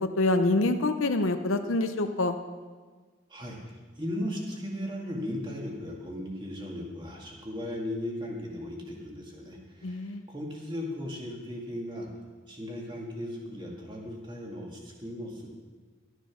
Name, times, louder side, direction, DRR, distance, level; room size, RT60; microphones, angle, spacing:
voice 1, 0.0-2.4 9.8-10.2, left 2 dB, 85° left, 7 dB, 0.7 m, -26 dB
voice 2, 3.3-10.0 10.3-12.1 12.5-15.5, left 1 dB, 25° right, -1 dB, 2.0 m, -37 dB
12.5 x 9.2 x 6.2 m, 1.4 s
head